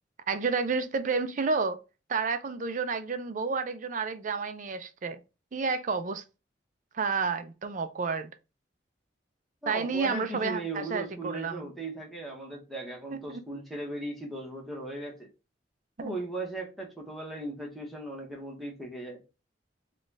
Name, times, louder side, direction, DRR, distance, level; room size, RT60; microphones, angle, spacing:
voice 1, 0.3-1.8 2.1-5.2 5.5-6.2 6.9-8.3 9.7-11.7 13.1-13.4 16.0-16.1, right 4 dB, 45° right, 0.5 m, -30 dB
voice 2, 9.6-15.3 16.0-19.2, right 2 dB, ahead, 1.1 m, -38 dB
3.9 x 2.4 x 3.2 m
head